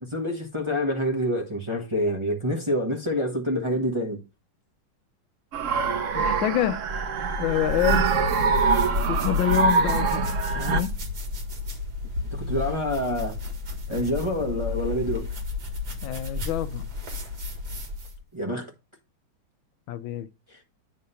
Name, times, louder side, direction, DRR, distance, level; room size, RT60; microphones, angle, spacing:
voice 1, 0.0-4.2 12.3-13.4 13.9-15.3 18.3-18.7 20.5-20.6, equal, 20° right, 0.9 m, -27 dB
sound 1, 5.5-10.8, right 5 dB, 70° right, 0.7 m, -24 dB
voice 2, 6.1-6.8 7.4-8.0 9.1-10.9 16.0-16.9 19.9-20.3, left 12 dB, 80° left, 1.3 m, -27 dB
sound 2, 7.3-18.2, left 3 dB, 55° right, 2.1 m, -32 dB
9.4 x 3.7 x 5.5 m
omnidirectional pair, 2.2 m